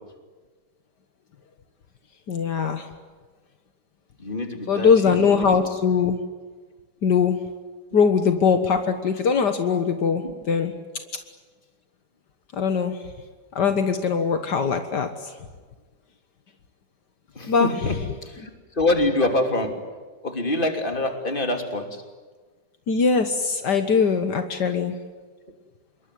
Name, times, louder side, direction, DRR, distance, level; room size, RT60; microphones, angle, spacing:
voice 1, 2.3-2.9 4.7-6.2 7.0-7.4 7.9-10.7 12.5-13.0 13.6-15.3 17.4-17.7 22.9-25.0, left 6 dB, 70° left, 7 dB, 2.0 m, -21 dB
voice 2, 4.2-5.7 10.2-10.3 17.3-18.0 18.2-19.8 20.2-22.0, left 2 dB, 30° left, 4 dB, 3.3 m, -26 dB
27.0 x 22.5 x 9.4 m, 1.4 s
omnidirectional pair, 1.9 m